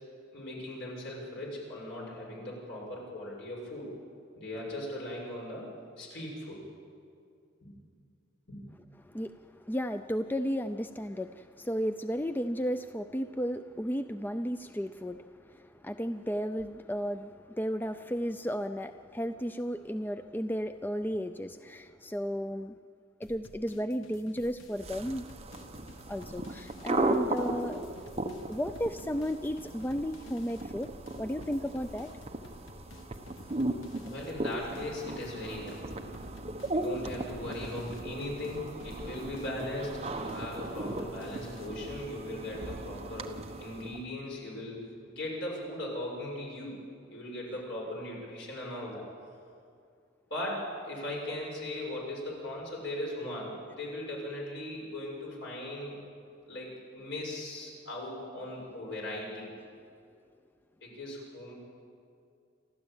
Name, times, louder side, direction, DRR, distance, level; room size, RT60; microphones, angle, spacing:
voice 1, 0.3-4.0 4.3-5.6 6.0-6.6 7.6-7.7 8.5-8.6 34.0-36.0 36.7-43.3 43.6-46.7 47.1-49.0 50.3-56.0 56.5-59.5 60.8-61.5, left 1 dB, 65° left, -2 dB, 6.7 m, -38 dB
voice 2, 9.0-22.7 23.2-25.3 26.1-27.8 28.5-32.1, equal, 10° left, 9 dB, 0.4 m, -34 dB
sound 1, 23.2-41.7, left 2 dB, 80° left, 1.3 m, -54 dB
sound 2, 24.7-44.0, right 2 dB, 35° right, 1.2 m, -37 dB
29.0 x 13.0 x 8.9 m, 2.4 s
head